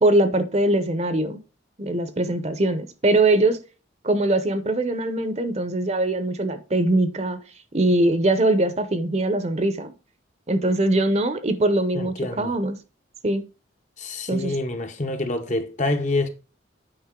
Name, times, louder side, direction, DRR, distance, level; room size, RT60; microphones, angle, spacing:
voice 1, 0.0-1.4 1.8-3.6 4.0-7.4 7.7-9.9 10.5-12.8 13.2-13.4 14.3-14.6, right 2 dB, 35° right, 0.7 m, -22 dB
voice 2, 11.9-12.5 14.0-16.3, left 2 dB, 40° left, 0.8 m, -27 dB
8.8 x 5.2 x 3.7 m
head